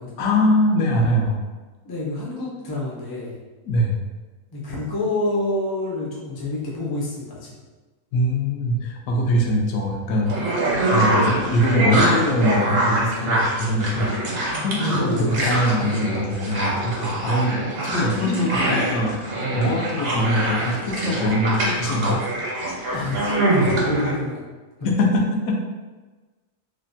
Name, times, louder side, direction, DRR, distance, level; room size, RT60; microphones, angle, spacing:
voice 1, 0.2-1.4 3.7-4.0 8.1-10.4 10.9-14.1 14.6-17.6 17.8-19.2 19.5-22.2 24.8-25.5, left 1 dB, 80° left, 0 dB, 1.0 m, -22 dB
voice 2, 1.8-3.4 4.5-7.5 14.5-15.5 22.9-23.3 23.6-24.4, left 2 dB, 35° left, -5 dB, 0.3 m, -27 dB
sound 1, 10.3-24.1, right 1 dB, 70° right, 1.1 m, -24 dB
3.2 x 2.1 x 2.5 m, 1.3 s
omnidirectional pair, 1.5 m